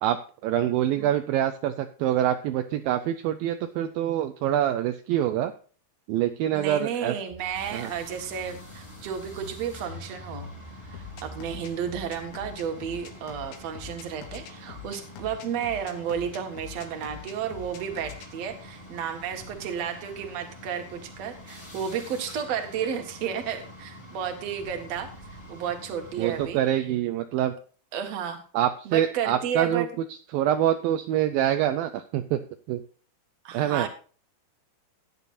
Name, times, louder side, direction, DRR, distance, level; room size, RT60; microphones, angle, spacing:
voice 1, 0.0-5.5 6.1-7.2 7.7-7.9 26.2-27.5 28.5-29.9 30.3-32.4 32.7-32.8 33.5-33.9, right 11 dB, 80° right, 8 dB, 2.1 m, -25 dB
voice 2, 6.5-10.5 10.9-25.1 25.5-26.6 27.9-28.4 28.9-29.9 33.4-33.9, right 8 dB, 50° right, 5 dB, 2.2 m, -32 dB
Car / Engine, 7.3-14.3, left 1 dB, 60° left, 4.4 m, -47 dB
sound 1, 7.5-26.5, left 1 dB, 10° left, 1.4 m, -46 dB
sound 2, 10.9-18.3, left 10 dB, 75° left, 3.6 m, -43 dB
16.0 x 10.0 x 2.6 m, 0.39 s
omnidirectional pair, 4.8 m